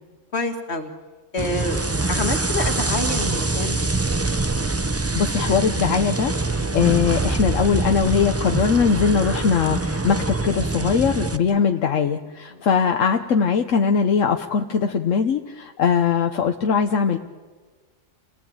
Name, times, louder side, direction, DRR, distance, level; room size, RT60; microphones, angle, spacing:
voice 1, 0.3-0.9 1.3-3.8 6.6-6.8 11.5-11.7 12.5-12.7, left 2 dB, 55° left, 5 dB, 2.3 m, -28 dB
sound 1, 1.4-11.4, right 3 dB, 15° right, 0.5 m, -24 dB
voice 2, 5.1-17.2, left 6 dB, 80° left, 5 dB, 1.3 m, -21 dB
28.0 x 18.5 x 8.8 m, 1.4 s
omnidirectional pair, 1.3 m